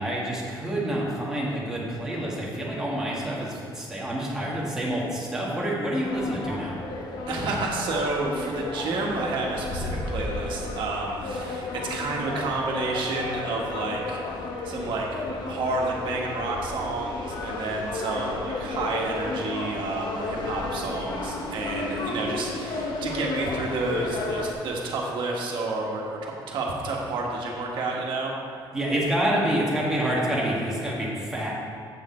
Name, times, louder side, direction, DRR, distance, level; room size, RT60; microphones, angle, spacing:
voice 1, 0.0-6.8 28.7-31.5, right 1 dB, 5° right, -6 dB, 1.5 m, -27 dB
sound 1, 6.0-24.5, left 3 dB, 55° left, 0.9 m, -33 dB
voice 2, 7.3-15.1 15.4-28.3, right 3 dB, 65° right, -2 dB, 1.4 m, -30 dB
7.7 x 6.6 x 4.3 m, 2.2 s
cardioid pair, 165°, 9 cm